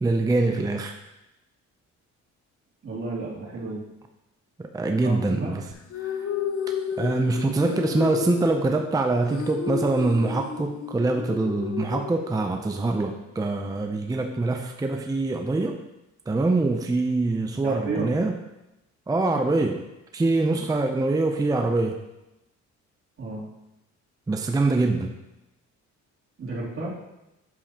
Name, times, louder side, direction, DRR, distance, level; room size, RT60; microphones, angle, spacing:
voice 1, 0.0-1.0 4.6-5.6 6.0-6.2 7.0-15.8 16.3-18.3 19.1-19.8 20.1-22.0 24.3-25.2, right 2 dB, 10° right, 4 dB, 0.5 m, -24 dB
voice 2, 2.8-3.8 5.0-5.5 17.6-18.2 23.2-23.4 26.4-26.9, right 3 dB, 45° right, -6 dB, 2.9 m, -32 dB
sound 1, 5.7-12.7, left 7 dB, 50° left, 0.7 m, -32 dB
8.3 x 7.0 x 2.9 m, 0.94 s
cardioid pair, 90°, 30 cm